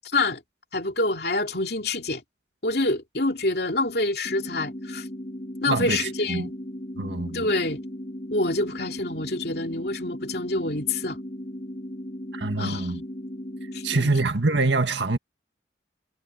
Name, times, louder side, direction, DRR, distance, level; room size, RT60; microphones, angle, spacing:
voice 1, 0.7-2.2 2.6-5.1 5.6-6.5 7.3-7.8 8.3-11.2 12.6-13.0 13.7-14.1, left 2 dB, 65° left, 2.7 m, -26 dB
sound 1, 4.2-14.2, equal, 40° left, 4.2 m, -37 dB
voice 2, 5.7-6.0 6.3-6.5 7.0-7.4 12.3-13.0 13.8-15.2, right 3 dB, 85° right, 1.8 m, -24 dB
head